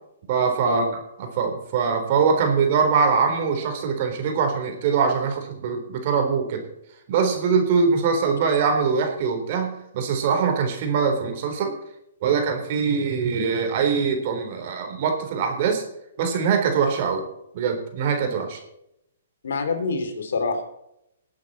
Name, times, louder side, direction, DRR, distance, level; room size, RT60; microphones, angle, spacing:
voice 1, 0.3-0.8 1.2-6.6 7.1-11.7 12.2-15.8 16.2-17.2 17.5-18.6, right 5 dB, 50° right, 5 dB, 3.9 m, -23 dB
voice 2, 19.4-20.6, left 4 dB, 70° left, 6 dB, 3.4 m, -26 dB
20.5 x 8.7 x 4.2 m, 0.79 s
hypercardioid pair, 135°, 0 cm